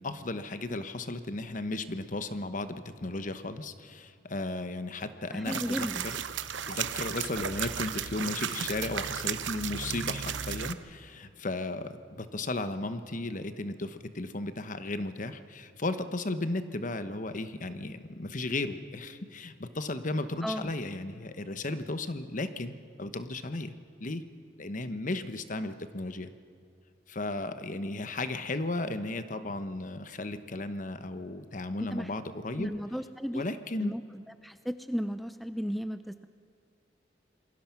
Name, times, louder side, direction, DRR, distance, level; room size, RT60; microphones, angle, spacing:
voice 1, 0.0-6.2 6.7-23.7 24.0-24.3 24.6-26.3 27.1-32.7 33.3-33.9, left 2 dB, 45° left, 10 dB, 1.1 m, -35 dB
voice 2, 5.3-6.0 20.4-20.7 31.9-32.1 32.6-33.4 33.8-34.0 34.4-36.3, equal, ahead, 10 dB, 0.5 m, -34 dB
sound 1, 5.4-10.7, right 8 dB, 80° right, 0.9 m, -34 dB
27.5 x 21.0 x 5.9 m, 2.5 s
head